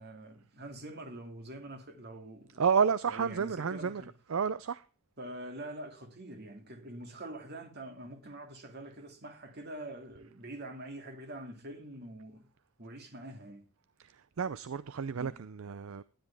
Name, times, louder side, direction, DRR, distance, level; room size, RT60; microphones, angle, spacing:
voice 1, 0.0-2.6 3.1-4.1 5.2-12.5 12.8-13.7 15.2-15.4, right 1 dB, 45° right, 2.5 m, -45 dB
voice 2, 2.6-4.0 4.3-4.8 14.1-16.0, right 6 dB, 65° right, 0.5 m, -30 dB
13.0 x 10.0 x 3.4 m
head